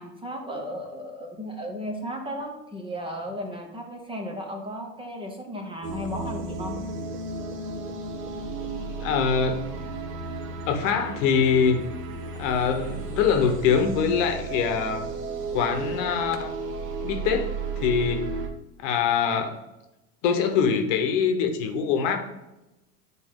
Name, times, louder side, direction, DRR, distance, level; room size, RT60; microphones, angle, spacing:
voice 1, 0.0-6.8, equal, 10° right, 3 dB, 0.9 m, -35 dB
sound 1, 5.8-18.5, right 3 dB, 70° right, 1.3 m, -34 dB
voice 2, 9.0-9.6 10.7-11.8 12.4-15.1 15.5-16.5 17.0-18.2 18.8-19.6 20.2-22.3, left 6 dB, 50° left, 6 dB, 1.1 m, -24 dB
8.9 x 4.2 x 3.7 m, 0.97 s
hypercardioid pair, 100°, 48 cm